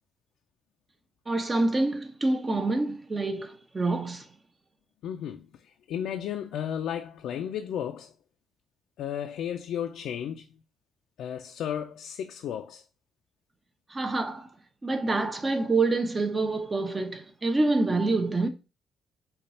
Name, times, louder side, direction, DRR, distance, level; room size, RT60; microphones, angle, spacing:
voice 1, 1.3-4.3 13.9-14.5 14.8-18.5, right 2 dB, 25° right, 0.8 m, -26 dB
voice 2, 5.0-8.1 9.0-10.4 11.2-12.8, left 9 dB, 80° left, 0.5 m, -34 dB
5.2 x 2.4 x 4.2 m
cardioid pair, 90°, 0 cm